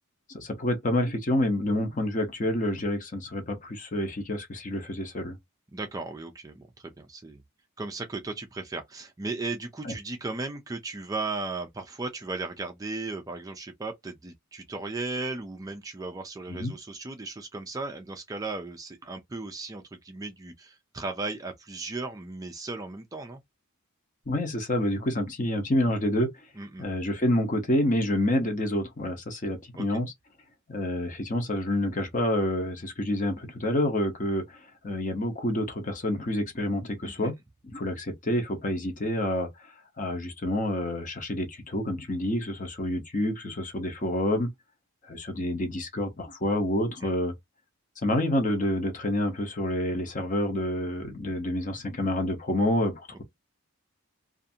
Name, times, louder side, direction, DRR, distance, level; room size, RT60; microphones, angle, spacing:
voice 1, 0.3-5.4 9.8-9.9 16.5-16.7 24.3-26.3 26.8-30.1 30.7-37.3 37.7-44.5 45.0-47.3 48.0-53.2, left 1 dB, 35° left, 0.8 m, -28 dB
voice 2, 5.7-7.4 7.8-23.4 26.6-26.9 29.7-29.9 37.0-37.3 47.0-47.1, right 3 dB, 15° right, 0.3 m, -36 dB
2.5 x 2.4 x 2.6 m
head